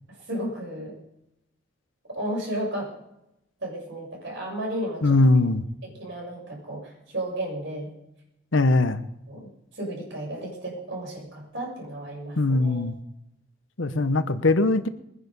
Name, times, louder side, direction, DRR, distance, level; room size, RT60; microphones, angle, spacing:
voice 1, 0.1-0.9 2.2-2.9 3.6-5.2 5.8-7.9 9.3-12.9 13.9-14.0, right 1 dB, 60° right, -1 dB, 6.9 m, -33 dB
voice 2, 5.0-5.6 8.5-9.0 12.4-13.0 13.8-14.9, left 2 dB, 70° left, 12 dB, 1.0 m, -21 dB
21.5 x 10.0 x 5.4 m, 0.84 s
head